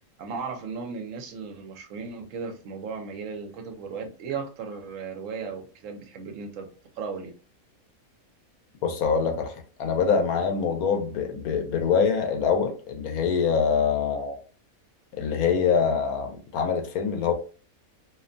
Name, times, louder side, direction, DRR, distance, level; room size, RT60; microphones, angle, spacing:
voice 1, 0.2-6.7 7.0-7.3, right 5 dB, 70° right, 4 dB, 0.9 m, -36 dB
voice 2, 8.8-14.4 15.1-17.3, left 6 dB, 85° left, 5 dB, 1.1 m, -24 dB
2.7 x 2.1 x 2.5 m, 0.37 s
omnidirectional pair, 1.5 m